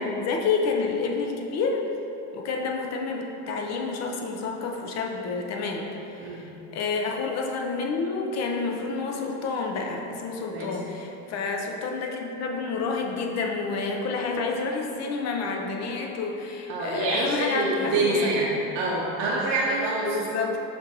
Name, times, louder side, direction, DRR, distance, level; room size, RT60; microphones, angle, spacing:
voice 1, 0.0-1.9 2.3-6.4 6.7-18.4 20.0-20.6, left 4 dB, 45° left, 1 dB, 0.5 m, -29 dB
voice 2, 16.7-20.2, right 2 dB, 80° right, -5 dB, 0.7 m, -26 dB
6.0 x 2.6 x 2.7 m, 2.9 s
supercardioid pair, 115°, 38 cm